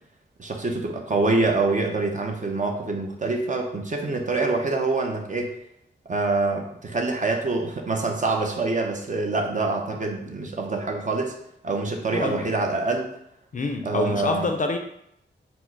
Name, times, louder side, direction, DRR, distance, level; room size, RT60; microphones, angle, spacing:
voice 1, 0.4-5.6 6.1-11.3 11.6-13.1 13.8-14.5, right 3 dB, 40° right, 2 dB, 0.6 m, -25 dB
voice 2, 12.1-12.5 13.5-14.8, left 3 dB, 45° left, 5 dB, 0.4 m, -26 dB
4.4 x 2.0 x 4.4 m, 0.77 s
wide cardioid pair, 140°, 19 cm